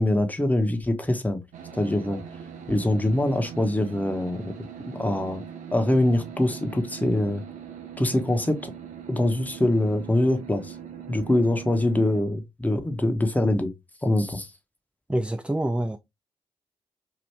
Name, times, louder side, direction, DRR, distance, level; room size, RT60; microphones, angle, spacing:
voice 1, 0.0-1.4 1.7-2.2 2.7-4.5 4.9-5.4 5.7-7.4 8.0-8.7 9.1-10.7 11.1-13.7 14.0-14.5, left 1 dB, 10° left, 1.0 m, -24 dB
sound 1, 1.5-12.2, right 8 dB, 70° right, 0.7 m, -41 dB
voice 2, 15.1-16.0, right 1 dB, 10° right, 0.4 m, -26 dB
2.9 x 2.5 x 3.2 m
hypercardioid pair, 40°, 13 cm